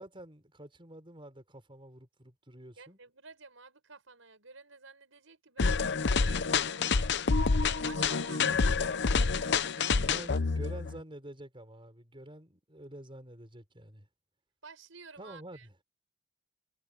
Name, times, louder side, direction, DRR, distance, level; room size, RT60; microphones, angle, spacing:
voice 1, 0.0-3.0 8.3-8.8 10.0-14.1 15.2-15.7, right 1 dB, 25° right, 6.1 m, -48 dB
voice 2, 2.8-5.8 6.1-6.8 7.8-10.2 14.6-15.8, right 4 dB, 75° right, 6.1 m, -52 dB
sound 1, 5.6-11.0, left 4 dB, 60° left, 0.8 m, -28 dB
head